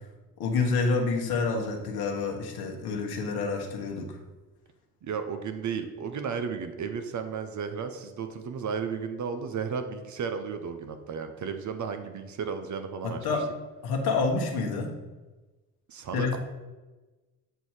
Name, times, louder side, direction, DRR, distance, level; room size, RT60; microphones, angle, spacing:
voice 1, 0.4-4.2 13.0-13.5 13.8-15.0 16.1-16.4, left 4 dB, 60° left, 0 dB, 1.3 m, -28 dB
voice 2, 5.0-13.3 15.9-16.4, right 6 dB, 40° right, 8 dB, 0.7 m, -34 dB
7.7 x 2.7 x 4.7 m, 1.2 s
hypercardioid pair, 55°, 44 cm